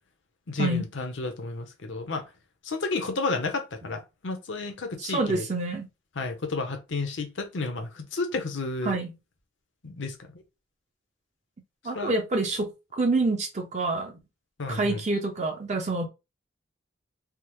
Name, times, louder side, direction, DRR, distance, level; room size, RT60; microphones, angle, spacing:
voice 1, 0.5-2.2 2.6-5.5 6.2-9.0 9.8-10.2 11.9-12.2 14.6-15.0, left 3 dB, 70° left, 0.7 m, -31 dB
voice 2, 5.0-5.9 8.8-9.1 11.8-14.2 14.7-16.1, right 2 dB, 35° right, 0.5 m, -27 dB
3.5 x 2.0 x 3.0 m
head